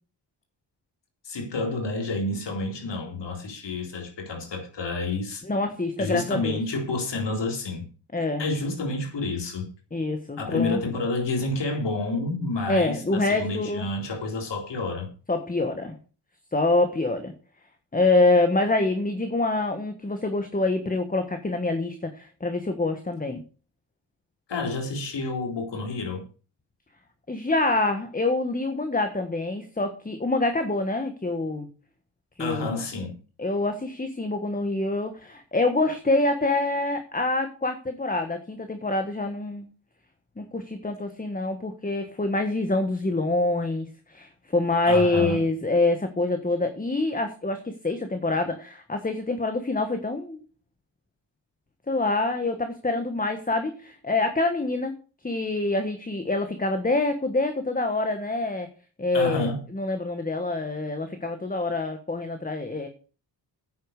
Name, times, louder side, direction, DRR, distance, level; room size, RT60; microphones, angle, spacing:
voice 1, 1.2-5.4 6.0-7.9 8.4-9.7 10.4-15.1 24.5-26.3 32.4-33.1 44.9-45.4 59.1-59.6, left 2 dB, 70° left, 4.0 m, -29 dB
voice 2, 5.4-6.6 8.1-8.4 9.9-10.8 12.7-13.8 15.3-16.0 16.5-17.3 17.9-23.4 27.3-31.7 32.4-32.8 33.4-39.7 40.4-50.4 51.9-54.9 55.2-58.7 59.0-62.9, left 2 dB, 20° left, 1.5 m, -26 dB
10.0 x 8.5 x 6.6 m
wide cardioid pair, 120°, 44 cm